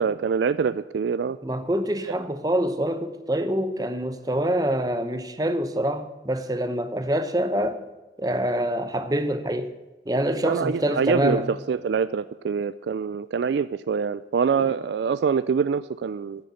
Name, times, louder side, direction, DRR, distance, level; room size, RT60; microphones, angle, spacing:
voice 1, 0.0-1.4 10.4-16.5, right 6 dB, 80° right, 14 dB, 0.3 m, -25 dB
voice 2, 1.4-7.8 8.2-9.7 10.1-11.5 14.6-14.7, right 1 dB, 20° right, 9 dB, 0.8 m, -25 dB
9.9 x 6.5 x 7.5 m, 1.2 s
head